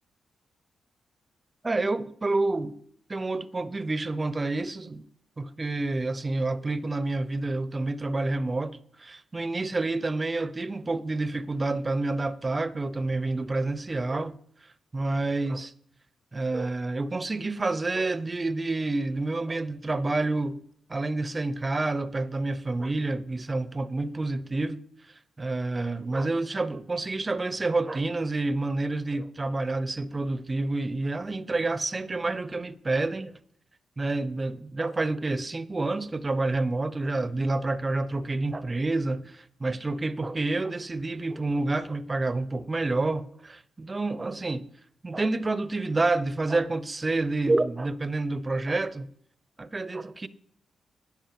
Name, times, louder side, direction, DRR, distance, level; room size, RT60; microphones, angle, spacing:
voice 1, 1.6-2.8 3.1-5.0 5.4-14.4 14.9-15.7 16.3-20.6 20.9-24.8 25.4-33.4 34.0-44.7 45.0-49.1 49.6-50.3, right 2 dB, 30° right, 0.5 m, -28 dB
10.5 x 5.3 x 5.8 m
cardioid pair, 75°, 0 cm